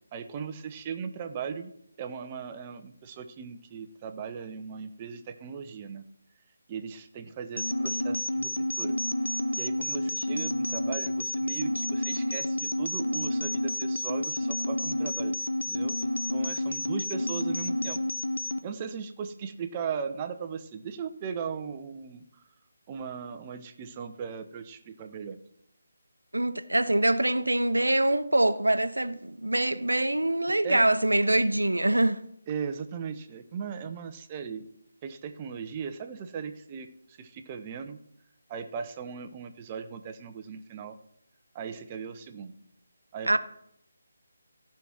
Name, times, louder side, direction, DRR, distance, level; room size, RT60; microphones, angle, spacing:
voice 1, 0.1-1.7 2.0-6.0 6.7-9.0 9.5-15.4 15.6-18.0 18.6-22.2 22.9-25.4 30.6-30.8 32.5-34.6 35.0-38.0 38.5-41.0 41.5-42.5 43.1-43.4, right 6 dB, 20° right, 0.8 m, -38 dB
sound 1, 7.6-18.6, left 1 dB, 70° left, 0.9 m, -30 dB
voice 2, 26.3-32.2 43.3-43.4, right 1 dB, 75° right, 0.8 m, -24 dB
15.0 x 5.8 x 6.1 m
figure-of-eight pair, 150°, 0 cm